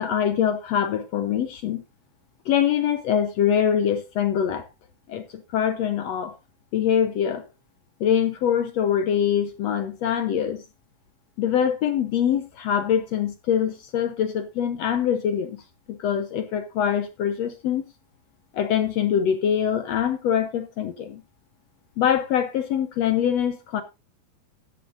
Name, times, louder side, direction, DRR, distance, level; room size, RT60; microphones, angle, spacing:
voice 1, 0.0-1.8 2.5-4.6 5.1-6.3 6.7-7.4 8.0-10.6 11.4-15.6 15.9-17.8 18.5-21.2 22.0-23.8, left 9 dB, 65° left, 1.8 m, -24 dB
15.0 x 10.5 x 2.6 m
omnidirectional pair, 3.8 m